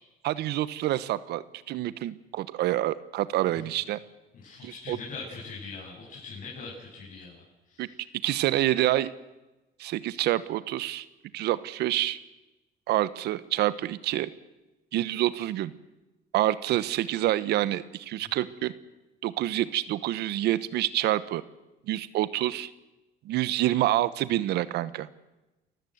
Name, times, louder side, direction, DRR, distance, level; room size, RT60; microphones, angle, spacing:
voice 1, 0.2-4.0 4.6-5.0 7.8-7.9 8.2-9.1 9.8-11.0 11.3-12.2 12.9-14.3 14.9-15.7 16.3-18.7 19.2-21.4 21.9-22.7 23.2-25.1, right 14 dB, 80° right, 16 dB, 1.0 m, -27 dB
voice 2, 4.4-8.0 18.2-18.5, left 4 dB, 55° left, -5 dB, 7.9 m, -42 dB
28.0 x 15.0 x 8.0 m, 1.0 s
cardioid pair, 110°, 17 cm